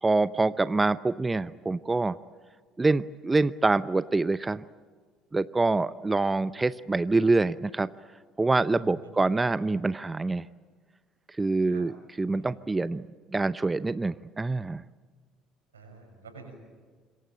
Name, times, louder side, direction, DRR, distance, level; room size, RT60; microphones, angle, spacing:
voice 1, 0.0-2.2 2.8-4.6 5.3-7.9 8.4-10.5 11.4-13.0 13.3-14.8, right 3 dB, 20° right, 15 dB, 0.7 m, -25 dB
voice 2, 8.8-9.1 11.7-11.8 12.2-12.6 15.7-16.5, right 4 dB, 90° right, 3 dB, 6.7 m, -50 dB
26.5 x 23.0 x 9.1 m, 1.5 s
hypercardioid pair, 60°, 0 cm